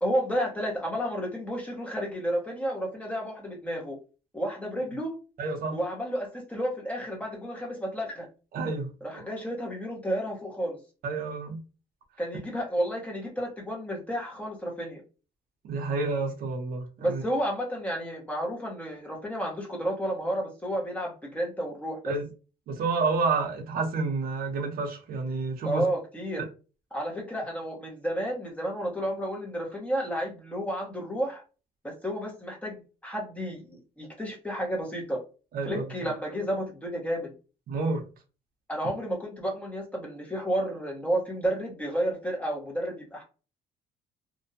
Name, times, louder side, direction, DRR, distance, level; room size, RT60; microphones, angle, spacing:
voice 1, 0.0-4.0 4.3-5.2 5.7-8.3 9.0-10.8 12.2-15.0 17.0-22.2 25.6-26.5 26.9-31.4 31.8-35.2 35.6-37.3 38.7-43.2, equal, 10° left, -2 dB, 0.9 m, -31 dB
voice 2, 5.4-5.8 8.5-9.2 11.0-11.6 15.6-17.2 22.0-22.2 22.7-25.9 35.5-35.9 37.7-38.0, right 4 dB, 60° right, 4 dB, 0.7 m, -29 dB
2.5 x 2.1 x 2.6 m, 0.34 s
cardioid pair, 110°, 17 cm